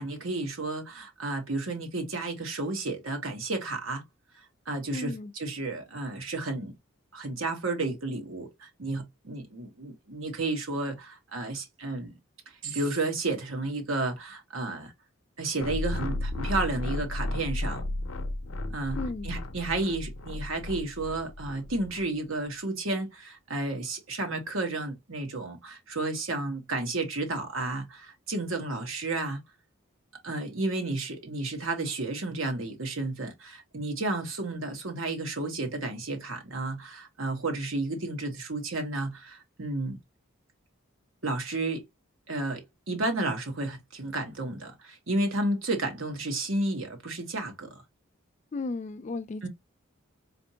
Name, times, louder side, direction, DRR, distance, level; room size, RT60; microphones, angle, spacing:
voice 1, 0.0-4.0 4.3-6.7 7.1-12.2 12.5-14.9 15.4-17.8 18.7-29.4 30.2-40.0 41.2-41.8 42.3-47.8 49.4-49.5, right 2 dB, 70° right, 1.2 m, -32 dB
voice 2, 4.9-5.3 19.0-19.3 48.5-49.5, left 3 dB, 35° left, 0.3 m, -34 dB
sound 1, 15.6-22.0, left 1 dB, 75° left, 0.6 m, -34 dB
4.2 x 2.6 x 2.7 m
head